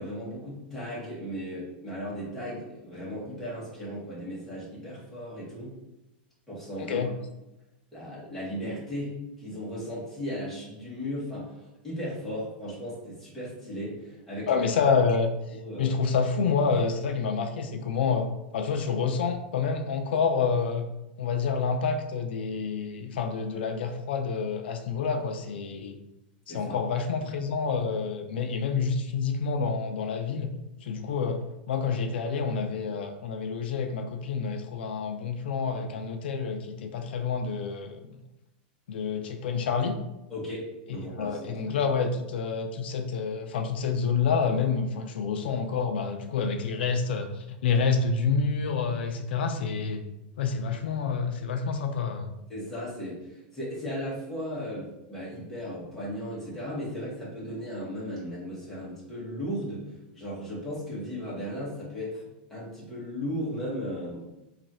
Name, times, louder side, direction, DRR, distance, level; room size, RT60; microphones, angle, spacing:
voice 1, 0.0-5.7 6.5-7.0 7.9-14.6 15.5-16.0 26.5-26.8 40.3-41.8 52.5-59.8 60.1-62.2 62.5-64.2, equal, 5° left, -9 dB, 1.2 m, -36 dB
voice 2, 6.8-7.1 14.5-15.3 15.8-20.9 21.2-26.0 26.5-30.5 30.8-31.4 31.7-38.0 38.9-40.0 41.2-50.0 50.4-52.3, left 5 dB, 85° left, 5 dB, 0.4 m, -28 dB
3.0 x 2.5 x 4.1 m, 0.93 s
supercardioid pair, 170°, 6 cm